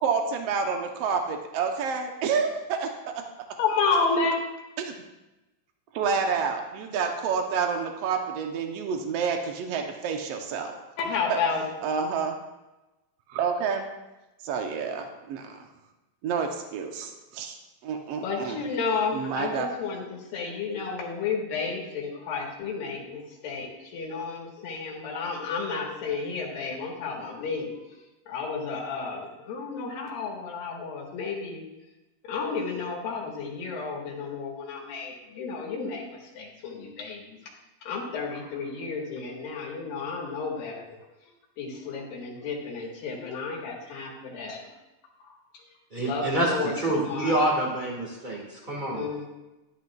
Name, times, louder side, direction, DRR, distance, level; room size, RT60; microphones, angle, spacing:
voice 1, 0.0-3.2 4.8-4.9 5.9-10.7 11.3-11.4 11.8-12.4 13.3-13.9 14.4-15.7 16.2-17.6 17.8-18.6 19.1-19.7, right 6 dB, 85° right, 4 dB, 1.4 m, -29 dB
voice 2, 3.6-4.4 11.0-11.6 18.2-27.7 28.3-31.6 32.2-37.2 37.8-41.0 41.6-44.6 46.0-47.3 48.9-49.3, left 4 dB, 85° left, -2 dB, 3.3 m, -31 dB
voice 3, 45.9-49.0, right 1 dB, 35° right, -2 dB, 0.7 m, -27 dB
11.5 x 11.0 x 2.4 m, 1.0 s
omnidirectional pair, 4.0 m